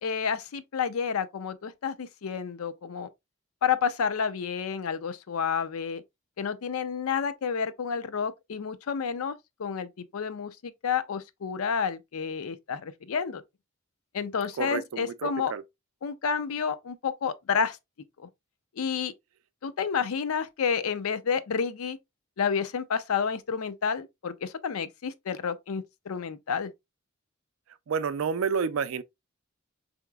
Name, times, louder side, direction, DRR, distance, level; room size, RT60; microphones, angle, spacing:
voice 1, 0.0-3.1 3.6-6.0 6.4-9.3 9.6-13.4 14.1-15.5 16.0-17.8 18.2-18.3 18.8-19.1 19.6-22.0 22.4-26.7, left 6 dB, 85° left, 0.5 m, -30 dB
voice 2, 14.6-15.6 27.9-29.0, right 6 dB, 70° right, 0.4 m, -29 dB
4.7 x 2.8 x 2.2 m
head